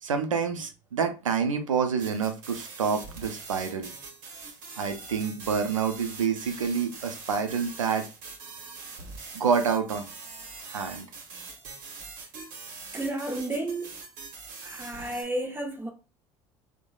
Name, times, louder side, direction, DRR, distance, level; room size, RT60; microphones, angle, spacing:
voice 1, 0.0-3.9 4.8-8.1 9.3-10.0 10.7-11.1, right 6 dB, 90° right, 0.4 m, -28 dB
sound 1, 2.0-15.2, right 4 dB, 55° right, 0.9 m, -43 dB
voice 2, 12.9-13.9 14.6-15.9, right 1 dB, 15° right, 0.8 m, -32 dB
3.0 x 2.1 x 2.3 m
hypercardioid pair, 65°, 16 cm